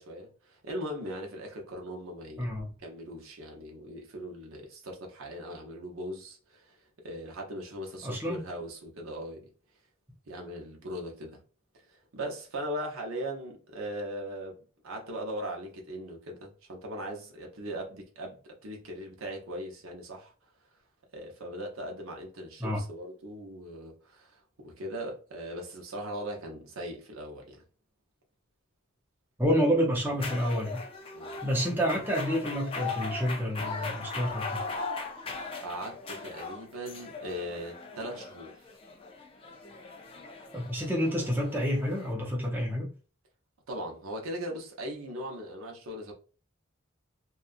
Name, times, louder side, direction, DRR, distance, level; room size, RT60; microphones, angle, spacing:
voice 1, 0.0-2.5 2.8-6.8 7.0-9.5 10.3-11.4 11.9-20.3 21.1-27.6 31.1-31.3 35.6-38.5 43.7-46.1, equal, 85° right, 0.8 m, -39 dB
voice 2, 2.4-2.7 8.0-8.4 22.6-22.8 29.4-30.8 31.4-34.6 40.5-42.9, equal, 10° right, 0.6 m, -29 dB
sound 1, 30.1-42.1, left 4 dB, 25° left, 0.4 m, -39 dB
2.8 x 2.3 x 2.4 m
head